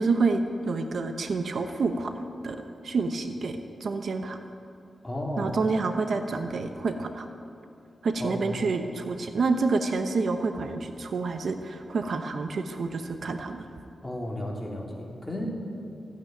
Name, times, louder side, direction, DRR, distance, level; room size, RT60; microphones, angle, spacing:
voice 1, 0.0-2.1 2.4-4.4 5.4-7.3 8.0-13.6, right 4 dB, 70° right, 7 dB, 1.0 m, -28 dB
voice 2, 5.0-5.5 8.2-8.5 14.0-15.5, left 1 dB, 10° left, -2 dB, 3.3 m, -33 dB
15.5 x 9.3 x 9.3 m, 2.6 s
cardioid pair, 80°, 0 cm